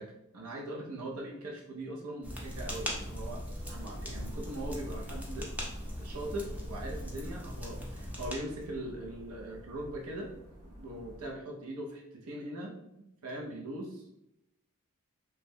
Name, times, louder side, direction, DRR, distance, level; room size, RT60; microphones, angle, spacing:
voice 1, 0.0-3.4 3.7-5.6 6.0-10.3 10.6-14.1, right 1 dB, 70° right, 0 dB, 0.6 m, -41 dB
sound 1, 2.2-8.7, equal, 5° right, 0.5 m, -39 dB
sound 2, 3.5-11.3, equal, 85° right, 1.0 m, -52 dB
2.9 x 2.1 x 3.5 m, 0.85 s
head